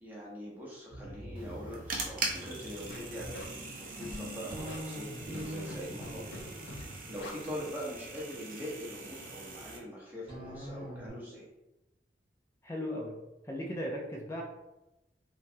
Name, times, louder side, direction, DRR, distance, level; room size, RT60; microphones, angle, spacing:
voice 1, 0.0-6.4 6.7-11.5, equal, 10° right, -5 dB, 0.7 m, -43 dB
sound 1, 0.9-9.2 10.3-11.1, equal, 30° right, 1.0 m, -45 dB
sound 2, 1.3-9.8, right 3 dB, 50° right, 0.4 m, -42 dB
Scratching (performance technique), 2.9-3.4 4.0-4.2 4.5-4.8 5.3-5.8 6.0-6.4 6.7-6.8 7.1-7.3, left 2 dB, 75° left, 0.5 m, -44 dB
voice 2, 12.6-13.1 13.4-14.4, equal, 15° left, -2 dB, 0.3 m, -36 dB
3.0 x 2.2 x 2.6 m, 0.94 s
head